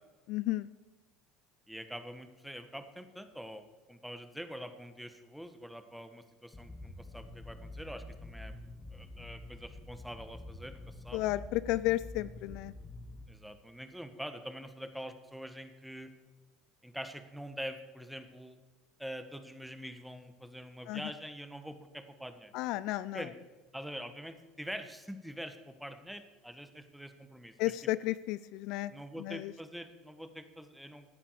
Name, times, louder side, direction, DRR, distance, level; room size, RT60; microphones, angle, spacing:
voice 1, 0.3-0.7 11.1-12.7 20.9-21.0 22.5-23.2 27.6-28.9 29.2-29.5, left 17 dB, 65° left, 17 dB, 0.3 m, -33 dB
voice 2, 1.7-8.6 8.9-11.2 13.3-16.1 16.8-18.6 19.0-22.5 23.1-23.3 23.7-27.7 28.9-31.0, equal, ahead, 9 dB, 1.5 m, -45 dB
sound 1, 6.5-13.2, left 2 dB, 20° left, 2.0 m, -47 dB
16.5 x 9.8 x 4.8 m, 1.3 s
hypercardioid pair, 75°, 0 cm